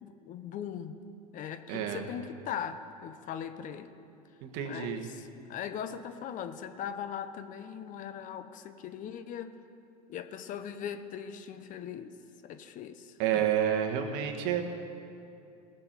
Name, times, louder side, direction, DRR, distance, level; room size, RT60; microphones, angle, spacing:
voice 1, 0.0-1.0 1.3-3.9 4.6-9.6 10.1-12.1 12.4-13.4, left 8 dB, 40° left, 10 dB, 0.8 m, -40 dB
voice 2, 1.7-2.0 4.4-5.1 13.2-14.6, right 9 dB, 55° right, 4 dB, 1.6 m, -29 dB
18.0 x 6.9 x 7.4 m, 2.6 s
hypercardioid pair, 105°, 19 cm